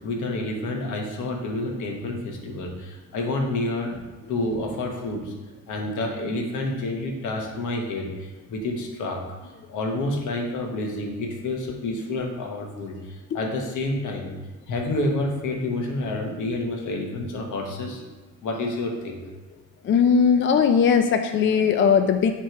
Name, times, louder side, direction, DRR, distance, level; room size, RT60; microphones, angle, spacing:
voice 1, 0.0-4.0 4.3-5.3 5.7-14.3 14.7-18.0 18.4-19.2, left 2 dB, 80° left, 1 dB, 1.2 m, -29 dB
voice 2, 19.8-22.3, left 6 dB, 40° left, 7 dB, 0.4 m, -19 dB
7.8 x 3.4 x 4.5 m, 1.2 s
cardioid pair, 90°, 30 cm